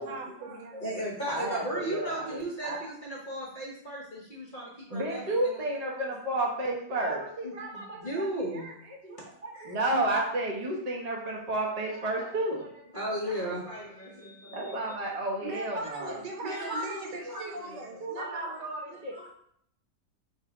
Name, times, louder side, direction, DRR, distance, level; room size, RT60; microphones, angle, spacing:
voice 1, 0.0-1.1 15.4-18.7, right 2 dB, 80° right, 1 dB, 1.5 m, -40 dB
voice 2, 0.7-5.6 6.0-6.1 7.4-8.7 9.0-9.2 9.5-9.7 9.9-10.0 12.9-14.9 16.4-17.5 18.4-18.5 18.9-19.3, equal, 40° left, -4 dB, 0.8 m, -36 dB
voice 3, 1.3-2.8 4.9-8.3 8.5-8.7 9.4-13.0 14.5-16.1 16.4-16.8 17.2-17.4 18.0-19.1, right 2 dB, 50° right, -2 dB, 0.4 m, -32 dB
4.0 x 2.7 x 4.8 m, 0.69 s
omnidirectional pair, 1.9 m